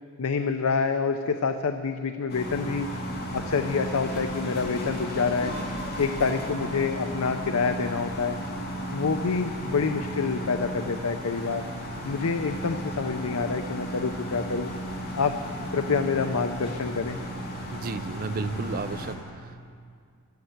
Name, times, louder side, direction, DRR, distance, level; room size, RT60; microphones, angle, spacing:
voice 1, 0.2-2.9 3.3-5.5 6.0-8.4 8.9-11.6 12.0-14.7 15.2-15.3 15.7-17.2, left 5 dB, 75° left, 7 dB, 0.6 m, -27 dB
sound 1, 2.3-19.1, equal, 45° left, 2.6 m, -34 dB
voice 2, 17.7-19.7, right 4 dB, 40° right, 13 dB, 0.4 m, -33 dB
12.5 x 12.0 x 7.9 m, 2.2 s
head